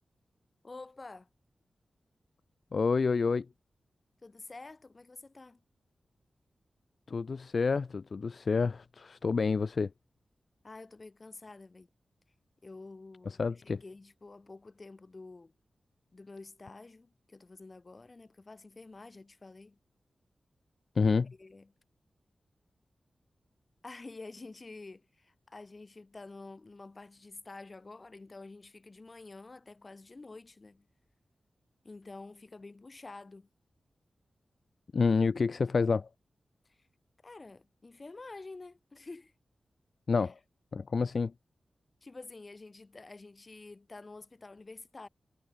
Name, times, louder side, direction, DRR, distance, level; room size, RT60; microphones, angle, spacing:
voice 1, 0.6-1.3 4.2-5.6 10.6-11.9 12.6-15.5 16.1-19.8 21.4-21.7 23.8-30.8 31.8-33.5 36.7-36.8 37.2-39.3 40.2-40.3 42.0-45.1, left 3 dB, 30° left, 6.3 m, -49 dB
voice 2, 2.7-3.5 7.1-9.9 13.3-13.8 21.0-21.3 34.9-36.1 40.1-40.4 40.7-41.3, left 4 dB, 45° left, 0.8 m, -28 dB
wide cardioid pair, 175°, 0 cm